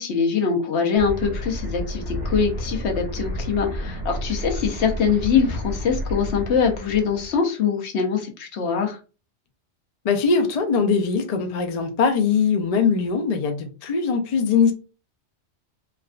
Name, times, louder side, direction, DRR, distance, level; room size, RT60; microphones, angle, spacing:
voice 1, 0.0-9.0, left 6 dB, 70° left, 3 dB, 1.0 m, -23 dB
sound 1, 1.0-7.4, equal, 45° right, 1.3 m, -31 dB
voice 2, 10.0-14.7, left 5 dB, 55° left, 5 dB, 0.4 m, -21 dB
3.4 x 2.3 x 2.4 m, 0.33 s
omnidirectional pair, 1.2 m